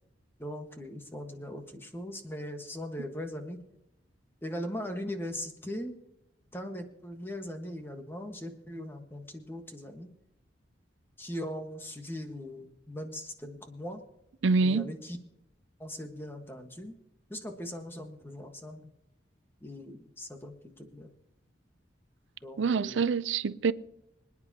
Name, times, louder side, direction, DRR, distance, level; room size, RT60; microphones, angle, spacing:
voice 1, 0.4-3.6 4.4-5.9 6.5-10.1 11.2-14.0 14.6-15.2 15.8-17.0 17.3-18.9 19.6-21.1 22.4-23.1, left 1 dB, 10° left, 1.4 m, -40 dB
voice 2, 14.4-14.9 22.6-23.7, right 4 dB, 85° right, 0.5 m, -26 dB
25.5 x 9.8 x 2.8 m
head